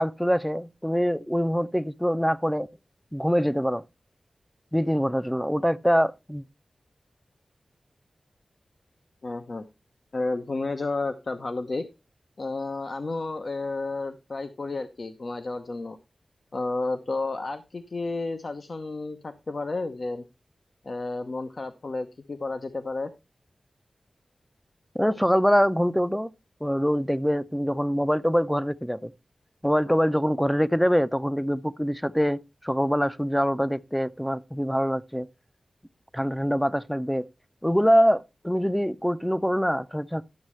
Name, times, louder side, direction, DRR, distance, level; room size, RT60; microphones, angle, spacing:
voice 1, 0.0-2.7 3.1-3.8 4.7-6.4 24.9-26.3 26.6-29.1 29.6-35.3 36.1-37.3 37.6-40.2, equal, ahead, 0.5 m, -24 dB
voice 2, 9.2-9.6 10.1-11.9 12.4-16.0 16.5-20.2 20.8-23.1, left 3 dB, 55° left, 0.8 m, -31 dB
11.5 x 7.2 x 3.2 m
wide cardioid pair, 75°, 0 cm